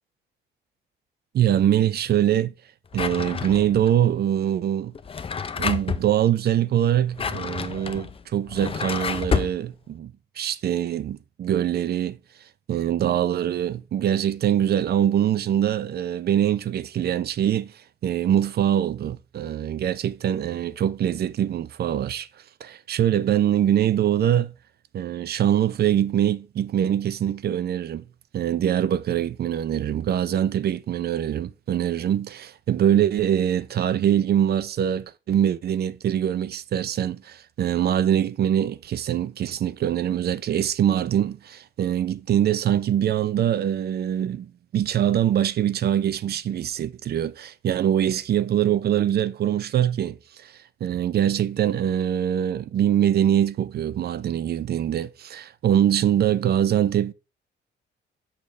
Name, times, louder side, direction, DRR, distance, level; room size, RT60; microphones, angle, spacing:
voice 1, 1.3-2.5 2.9-4.9 5.6-12.2 12.7-17.7 18.0-22.3 22.6-24.5 24.9-28.1 28.3-50.5 50.8-57.1, right 10 dB, 55° right, 0.5 m, -23 dB
Drawer open or close, 2.9-3.9 4.9-6.1 6.9-9.6, left 6 dB, 30° left, 0.5 m, -29 dB
6.4 x 5.7 x 3.2 m
cardioid pair, 90°, 20 cm